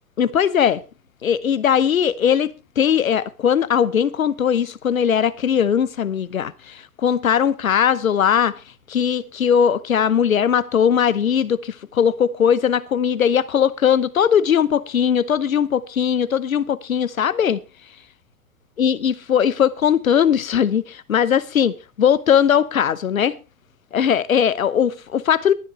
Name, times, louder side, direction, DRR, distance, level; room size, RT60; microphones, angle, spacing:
voice 1, 0.2-0.8 1.2-8.6 8.9-17.6 18.8-23.4 23.9-25.5, left 8 dB, 65° left, 0.9 m, -19 dB
23.0 x 7.9 x 3.2 m
figure-of-eight pair, 105°, 44 cm